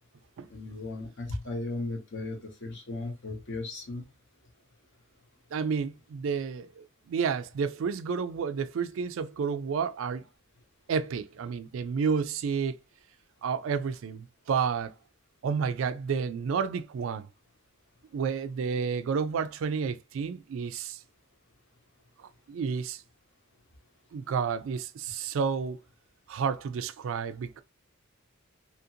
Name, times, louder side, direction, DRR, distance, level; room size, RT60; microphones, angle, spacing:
voice 1, 0.5-4.0, left 2 dB, 60° left, 0.9 m, -36 dB
voice 2, 5.5-10.2 10.9-12.8 13.4-14.9 15.4-17.3 18.1-21.0 22.2-23.0 24.1-25.8 26.3-27.6, right 6 dB, 65° right, 0.3 m, -30 dB
2.8 x 2.5 x 2.7 m
head